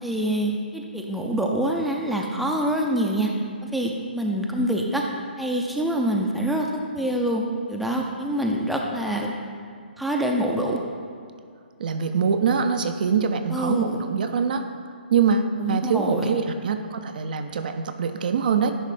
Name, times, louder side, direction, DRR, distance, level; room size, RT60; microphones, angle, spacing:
voice 1, 0.0-3.3 3.7-5.0 5.4-6.7 6.9-7.4 7.7-9.3 10.0-10.8 13.5-14.0 15.6-16.3, right 1 dB, ahead, 0 dB, 0.5 m, -25 dB
voice 2, 11.8-14.6 15.1-18.7, right 6 dB, 50° right, 7 dB, 0.5 m, -24 dB
9.8 x 3.3 x 4.9 m, 2.3 s
figure-of-eight pair, 135°, 6 cm